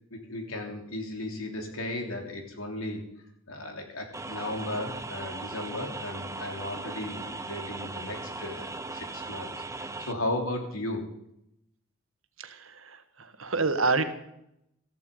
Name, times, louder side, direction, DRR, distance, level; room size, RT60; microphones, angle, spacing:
voice 1, 0.1-3.0 3.5-9.5 9.8-11.0, left 1 dB, 85° left, 3 dB, 3.3 m, -35 dB
sound 1, 4.1-10.1, right 3 dB, 15° right, 0.8 m, -38 dB
voice 2, 12.4-14.0, right 3 dB, 70° right, 9 dB, 1.5 m, -28 dB
14.5 x 14.0 x 5.3 m, 0.79 s
head